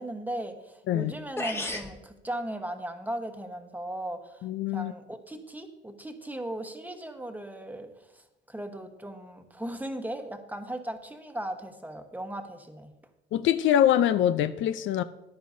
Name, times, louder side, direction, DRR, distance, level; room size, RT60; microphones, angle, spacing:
voice 1, 0.0-12.9, right 1 dB, 10° right, 1.1 m, -37 dB
sound 1, 1.0-1.1 1.4-1.9, left 2 dB, 10° left, 1.2 m, -32 dB
voice 2, 4.4-4.9 13.3-15.0, left 10 dB, 75° left, 0.5 m, -24 dB
14.5 x 10.0 x 2.7 m
cardioid pair, 90°, 20 cm